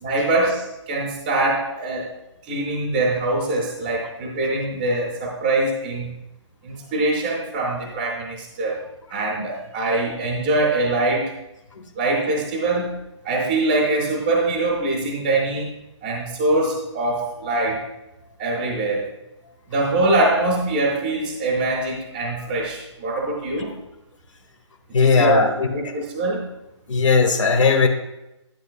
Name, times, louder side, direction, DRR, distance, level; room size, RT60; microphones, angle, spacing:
voice 1, 0.0-2.1 2.4-6.1 6.6-8.8 9.1-11.3 12.0-13.0 13.2-15.7 16.0-17.8 18.4-19.0 19.7-23.7 25.0-25.4 25.7-26.5, right 2 dB, 5° right, -2 dB, 0.5 m, -23 dB
voice 2, 24.9-25.7 26.9-27.9, left 4 dB, 85° left, 3 dB, 1.4 m, -17 dB
10.5 x 9.5 x 2.2 m, 0.93 s
hypercardioid pair, 180°, 16 cm